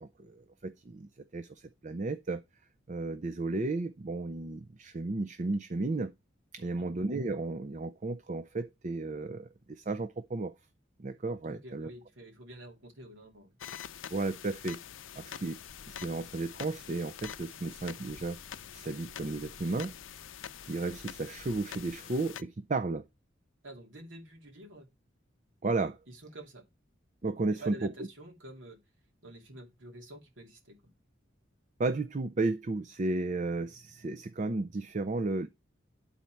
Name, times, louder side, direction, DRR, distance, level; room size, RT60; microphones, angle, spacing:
voice 1, 0.0-2.4 2.9-6.1 6.5-10.5 11.0-11.9 14.1-14.8 15.2-15.6 15.9-18.4 18.7-20.0 20.6-23.0 25.6-26.0 27.2-28.1 31.8-35.5, right 3 dB, 40° right, 0.5 m, -33 dB
voice 2, 6.6-6.9 11.4-13.6 23.6-24.9 26.1-26.7 27.5-28.8 29.2-30.9, right 1 dB, 75° right, 2.4 m, -49 dB
sound 1, 13.6-22.4, left 9 dB, 80° left, 0.5 m, -46 dB
sound 2, 15.7-21.9, equal, 15° right, 2.8 m, -58 dB
12.0 x 4.2 x 4.5 m
head